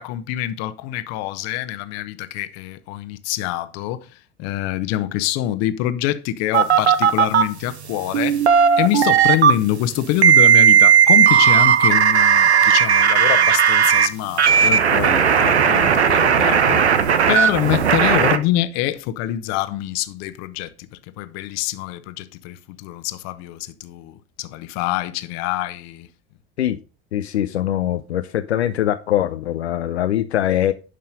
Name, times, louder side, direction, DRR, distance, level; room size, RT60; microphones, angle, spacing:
voice 1, 0.0-4.0 4.4-8.4 8.8-16.8 17.3-20.7 21.2-26.1, left 14 dB, 55° left, 1.1 m, -25 dB
Fake dial-up modem sound (Tape recorded), 6.5-7.4 8.1-9.5 10.2-14.1 14.4-18.4, right 8 dB, 85° right, 1.0 m, -15 dB
voice 2, 27.1-30.7, left 12 dB, 80° left, 0.6 m, -22 dB
11.5 x 5.6 x 5.2 m
figure-of-eight pair, 70°, 32 cm